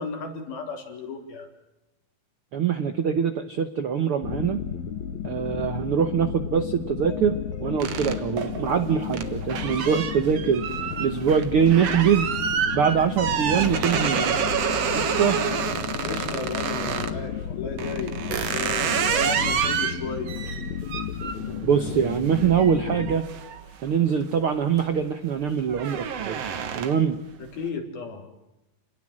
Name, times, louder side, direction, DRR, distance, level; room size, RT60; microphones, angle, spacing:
voice 1, 0.0-1.5 16.0-20.3 27.4-28.3, left 4 dB, 80° left, 3 dB, 5.8 m, -34 dB
voice 2, 2.5-4.6 5.2-10.6 11.0-12.3 12.7-14.4 14.9-15.4 21.6-23.2 23.8-26.4 26.7-27.2, right 7 dB, 80° right, 10 dB, 1.2 m, -23 dB
sound 1, 4.2-23.2, left 9 dB, 60° left, 2.5 m, -33 dB
sound 2, 7.8-17.2 17.8-24.2 24.6-25.0 25.3-27.2, right 7 dB, 50° right, 2.3 m, -28 dB
29.5 x 20.0 x 7.6 m, 0.92 s
omnidirectional pair, 4.2 m